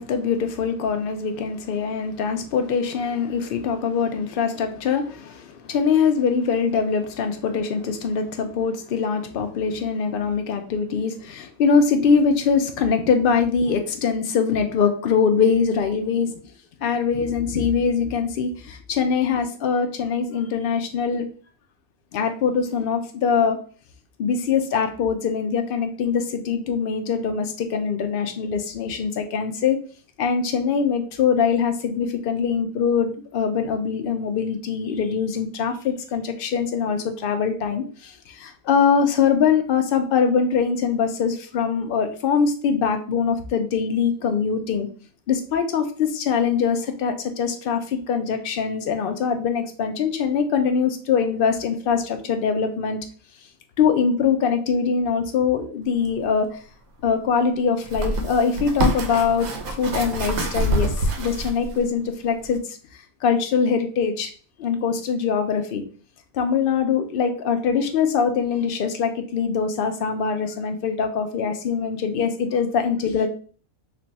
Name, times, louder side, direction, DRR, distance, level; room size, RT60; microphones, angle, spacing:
voice 1, 0.0-16.4 16.8-21.3 22.1-23.6 24.2-29.8 30.2-44.9 45.3-53.0 53.8-56.6 57.0-62.6 63.2-64.3 64.6-65.8 66.3-73.3, left 6 dB, 70° left, 6 dB, 0.5 m, -23 dB
sound 1, 56.0-56.1 57.8-61.8 62.4-62.6, right 1 dB, 90° right, 1.2 m, -25 dB
3.3 x 2.2 x 3.9 m, 0.41 s
omnidirectional pair, 1.4 m